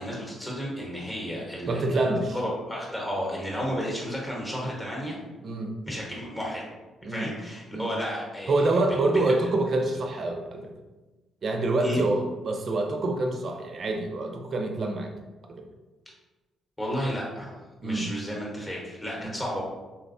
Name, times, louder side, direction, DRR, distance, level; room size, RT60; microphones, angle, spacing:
voice 1, 0.0-5.2 5.9-6.7 7.1-8.7 11.8-12.0 16.8-17.5 17.8-19.6, equal, 10° left, -3 dB, 1.0 m, -32 dB
voice 2, 1.7-2.4 5.4-5.8 7.0-7.3 7.7-7.9 8.5-10.7 11.4-15.1 15.5-15.7 17.8-18.1 19.2-19.4, right 2 dB, 50° right, 3 dB, 0.5 m, -26 dB
4.0 x 2.1 x 2.6 m, 1.2 s
cardioid pair, 90°, 0 cm